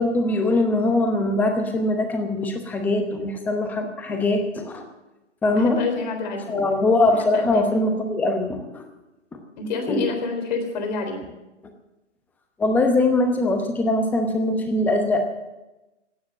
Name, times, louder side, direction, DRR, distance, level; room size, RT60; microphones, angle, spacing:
voice 1, 0.0-4.8 5.4-5.8 6.5-8.9 9.3-9.4 9.9-10.1 12.6-15.3, left 2 dB, 5° left, 5 dB, 0.9 m, -22 dB
voice 2, 4.1-4.4 5.5-6.6 7.2-7.7 9.6-11.2, left 3 dB, 35° left, 5 dB, 3.7 m, -28 dB
16.0 x 9.6 x 7.6 m, 1.0 s
figure-of-eight pair, 130°, 36 cm